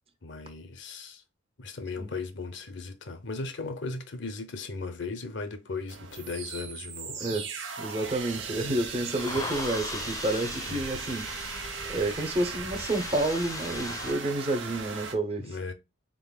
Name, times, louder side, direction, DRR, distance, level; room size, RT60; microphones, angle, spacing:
voice 1, 0.2-1.2 1.6-7.4 10.7-11.1 15.4-15.7, left 3 dB, 65° left, 0.7 m, -37 dB
sound 1, 5.9-15.2, right 5 dB, 80° right, 1.0 m, -38 dB
voice 2, 7.2-7.5 7.8-11.3 11.9-15.5, right 2 dB, 30° right, 0.7 m, -29 dB
sound 2, 8.1-14.1, left 3 dB, 20° left, 0.6 m, -39 dB
3.9 x 3.7 x 2.2 m
head